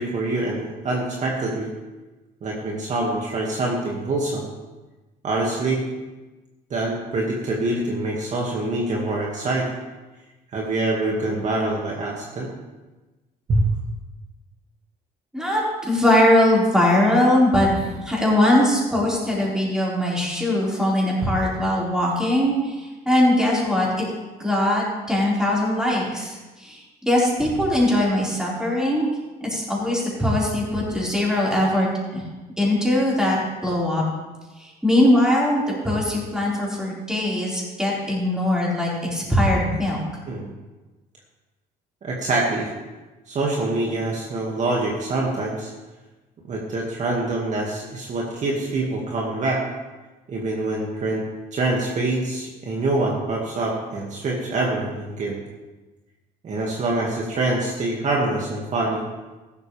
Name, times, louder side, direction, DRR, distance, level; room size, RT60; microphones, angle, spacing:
voice 1, 0.0-1.7 2.4-4.5 5.2-5.8 6.7-9.7 10.5-12.5 13.5-13.7 40.3-40.5 42.0-42.7 43.3-45.7 46.5-49.6 50.3-51.2 51.5-55.4 56.4-59.0, right 2 dB, 45° right, -2 dB, 2.2 m, -25 dB
voice 2, 15.3-24.0 24.4-29.1 29.4-32.2 32.6-33.4 33.6-34.0 34.6-40.0, left 1 dB, 5° right, -6 dB, 5.0 m, -21 dB
15.0 x 12.5 x 3.5 m, 1.2 s
cardioid pair, 110°, 17 cm